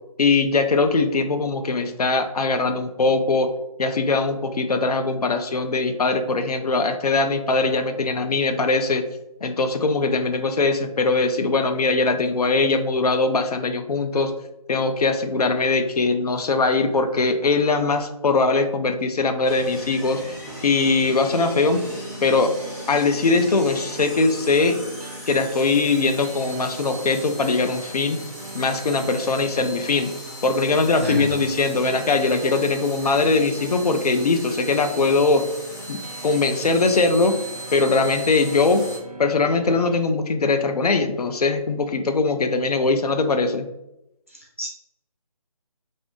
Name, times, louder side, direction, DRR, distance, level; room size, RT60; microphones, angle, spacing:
voice 1, 0.2-3.5 3.8-9.0 9.4-14.3 14.7-20.2 20.6-21.8 22.2-22.5 22.9-24.8 25.3-28.2 28.5-30.1 30.4-35.4 35.9-37.4 37.7-38.8 39.2-43.7, left 3 dB, 80° left, 7 dB, 0.5 m, -21 dB
sound 1, 19.4-39.0, equal, 30° left, 0.7 m, -38 dB
sound 2, 20.5-40.0, right 3 dB, 85° right, 0.6 m, -40 dB
voice 2, 44.3-44.7, equal, 20° right, -2 dB, 0.4 m, -28 dB
2.6 x 2.5 x 3.5 m, 0.88 s
hypercardioid pair, 175°, 19 cm